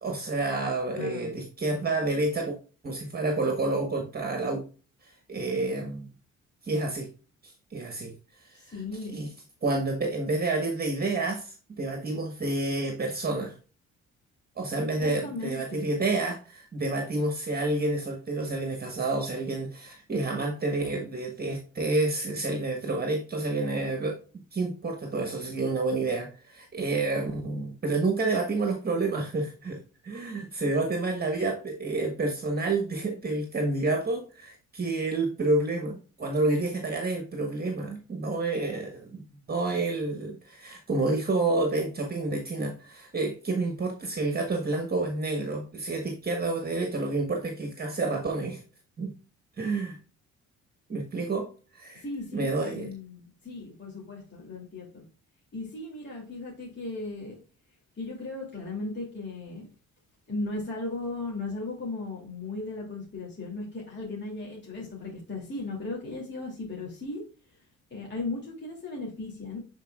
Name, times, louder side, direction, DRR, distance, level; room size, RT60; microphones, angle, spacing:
voice 1, 0.0-2.5 2.8-4.6 5.0-6.1 6.6-7.1 7.4-8.8 9.1-9.3 9.6-13.6 14.6-24.2 24.5-48.6 49.0-49.1 49.6-50.0 50.9-52.0 52.3-52.9, right 2 dB, 30° right, 4 dB, 1.3 m, -29 dB
voice 2, 0.9-1.3 8.5-9.3 15.0-15.9 52.0-55.0 55.5-57.4 57.9-59.7 60.3-67.3 67.5-67.6 67.9-69.6, left 3 dB, 35° left, -4 dB, 2.7 m, -36 dB
9.1 x 4.5 x 2.4 m, 0.36 s
cardioid pair, 90°, 30 cm